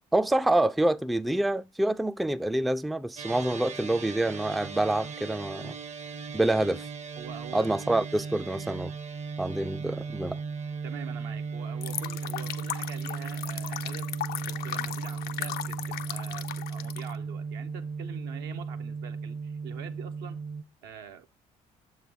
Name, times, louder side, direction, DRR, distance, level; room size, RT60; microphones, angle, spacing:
voice 1, 0.1-5.8 6.3-6.8 7.5-8.9 9.4-10.4, right 1 dB, ahead, 0.3 m, -27 dB
sound 1, 3.2-20.6, right 5 dB, 40° right, 0.6 m, -36 dB
voice 2, 7.2-7.7 10.8-14.1 14.5-20.4 20.8-21.3, right 8 dB, 80° right, 0.7 m, -45 dB
sound 2, 11.8-17.2, left 11 dB, 65° left, 0.4 m, -37 dB
6.9 x 3.1 x 5.2 m
hypercardioid pair, 55°, 17 cm